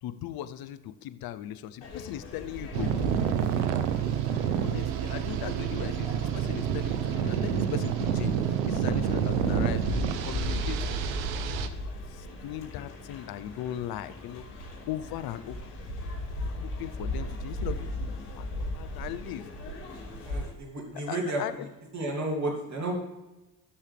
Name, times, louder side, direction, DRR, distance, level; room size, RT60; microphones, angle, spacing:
voice 1, 0.0-3.1 4.6-11.0 11.4-15.8 16.2-19.5 20.9-21.7, left 12 dB, 60° left, 13 dB, 0.8 m, -39 dB
sound 1, 1.8-20.5, left 1 dB, 80° left, 3.3 m, -37 dB
sound 2, 2.7-11.7, right 9 dB, 90° right, 0.7 m, -28 dB
voice 2, 20.2-21.7 21.9-23.0, right 2 dB, 45° right, 0 dB, 3.1 m, -32 dB
15.5 x 6.5 x 3.5 m, 1.0 s
hypercardioid pair, 60°, 40 cm